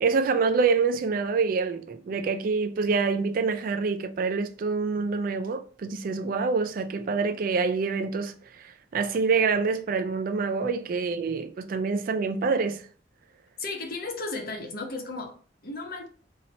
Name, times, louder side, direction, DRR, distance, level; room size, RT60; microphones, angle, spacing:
voice 1, 0.0-12.8, right 4 dB, 50° right, 0.3 m, -26 dB
voice 2, 13.6-16.1, left 3 dB, 55° left, 0.8 m, -35 dB
2.8 x 2.8 x 4.0 m
head